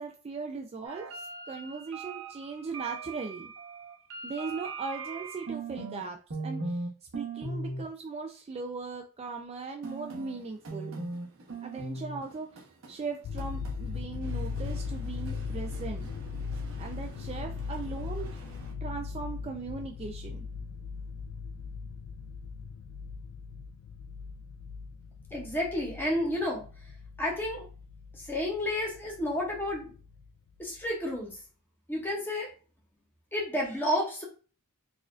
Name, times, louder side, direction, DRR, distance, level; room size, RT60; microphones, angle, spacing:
voice 1, 0.0-3.5 4.2-6.2 6.4-6.8 7.1-11.0 11.6-16.1 16.8-18.4 18.8-20.4, right 4 dB, 30° right, 3 dB, 0.3 m, -38 dB
sound 1, 0.8-6.0 6.3-6.9 7.1-7.8 9.8-18.7, right 3 dB, 65° right, 0.8 m, -41 dB
sound 2, 13.2-30.3 30.6-30.9, left 5 dB, 85° left, 0.3 m, -39 dB
voice 2, 25.3-26.6 27.2-27.7 28.3-29.9 30.6-31.3 31.9-32.5 33.3-34.2, left 1 dB, 10° left, -2 dB, 1.0 m, -31 dB
4.1 x 2.5 x 2.4 m, 0.38 s
head